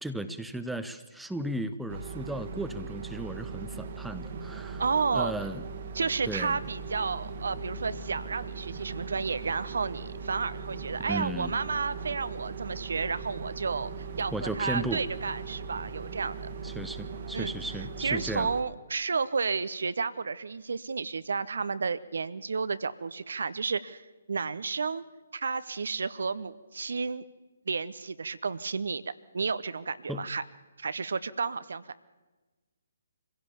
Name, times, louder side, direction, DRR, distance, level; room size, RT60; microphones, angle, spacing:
voice 1, 0.0-4.8 5.1-5.7 6.3-6.6 11.1-11.5 14.3-15.0 16.6-18.5 30.1-30.2, right 1 dB, ahead, 10 dB, 0.7 m, -35 dB
sound 1, 1.9-18.6, right 4 dB, 45° right, 1.5 m, -39 dB
voice 2, 4.8-5.3 5.9-13.9 14.2-16.5 17.3-17.5 18.0-25.0 25.3-27.2 27.7-29.0 29.3-30.4 30.8-31.8, right 5 dB, 60° right, 15 dB, 0.7 m, -31 dB
24.5 x 16.0 x 7.1 m, 1.2 s
figure-of-eight pair, 135°, 0 cm